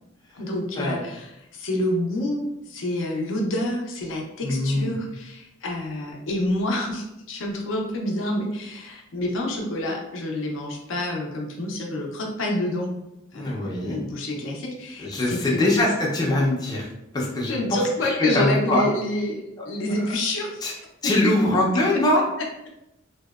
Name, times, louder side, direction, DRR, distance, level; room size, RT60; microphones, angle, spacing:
voice 1, 0.3-12.9 13.3-15.6 17.4-20.6 21.0-21.3, left 1 dB, 75° left, 0 dB, 0.5 m, -28 dB
voice 2, 4.4-4.9 13.3-14.0 15.0-16.9 17.1-17.6 18.3-18.8 20.6-20.7 21.0-22.2, left 1 dB, 20° left, -4 dB, 0.4 m, -22 dB
2.7 x 2.0 x 2.2 m, 0.88 s
head